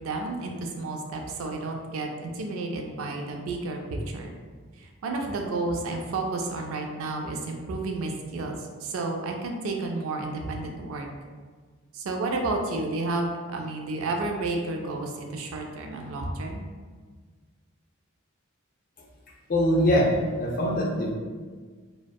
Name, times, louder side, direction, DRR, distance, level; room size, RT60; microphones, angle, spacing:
voice 1, 0.0-4.3 4.8-11.1 11.9-16.6, right 2 dB, 80° right, 2 dB, 0.4 m, -31 dB
voice 2, 19.5-21.1, equal, 40° left, -2 dB, 0.4 m, -23 dB
2.6 x 2.2 x 2.2 m, 1.5 s
head